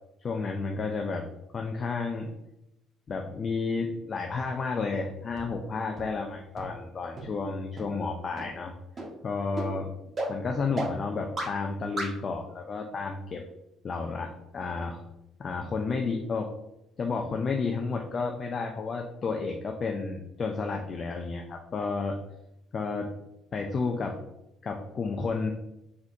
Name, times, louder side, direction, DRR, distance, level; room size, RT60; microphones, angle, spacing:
voice 1, 0.2-1.2 1.5-2.3 3.1-8.7 9.2-9.9 10.3-13.4 13.8-15.0 15.4-16.5 17.0-22.2 22.7-23.1 23.5-24.2 24.6-25.5, left 4 dB, 45° left, 3 dB, 0.5 m, -31 dB
sound 1, 5.4-5.5 6.0-6.1 6.6-6.7 7.2-7.3 7.8-7.9 8.4-8.5 9.0-9.1 9.6-9.7 10.2-10.3 10.8-10.9 11.4-11.5 12.0-12.1, right 2 dB, 40° right, 1.6 m, -32 dB
4.4 x 4.0 x 2.7 m, 0.87 s
hypercardioid pair, 60°, 0 cm